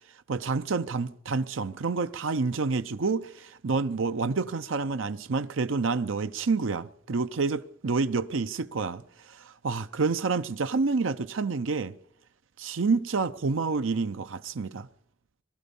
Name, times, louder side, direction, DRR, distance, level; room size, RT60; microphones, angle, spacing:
voice 1, 0.3-9.0 9.3-11.9 12.6-14.9, right 4 dB, 75° right, 0.6 m, -28 dB
21.5 x 12.5 x 5.4 m
head